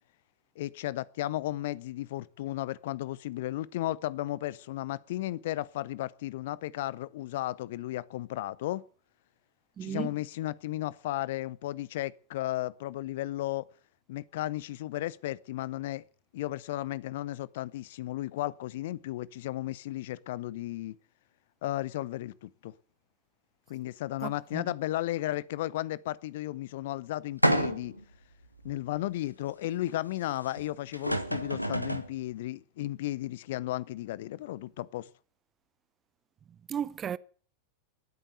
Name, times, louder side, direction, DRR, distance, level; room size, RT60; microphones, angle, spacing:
voice 1, 0.6-8.8 9.8-13.7 14.1-16.0 16.3-21.0 21.6-22.7 23.7-28.0 28.6-35.1, left 15 dB, 55° left, 0.6 m, -34 dB
voice 2, 9.8-10.1 24.2-24.7 36.7-37.2, right 8 dB, 25° right, 0.7 m, -35 dB
sound 1, 27.4-28.0 28.7-28.8 30.6-30.7 30.9-32.1, equal, 90° right, 1.3 m, -28 dB
19.0 x 9.0 x 8.0 m
figure-of-eight pair, 90°, 0 cm